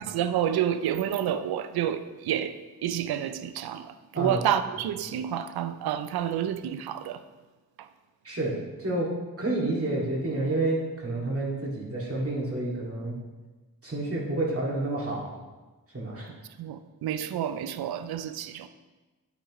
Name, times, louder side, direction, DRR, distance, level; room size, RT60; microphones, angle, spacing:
voice 1, 0.0-7.2 7.8-7.9 16.3-18.7, right 10 dB, 85° right, 0.5 m, -29 dB
voice 2, 8.2-9.1 9.4-13.2 13.8-15.3 15.9-16.3, right 2 dB, 40° right, 2.2 m, -29 dB
8.4 x 6.0 x 3.0 m
cardioid pair, 45°, 37 cm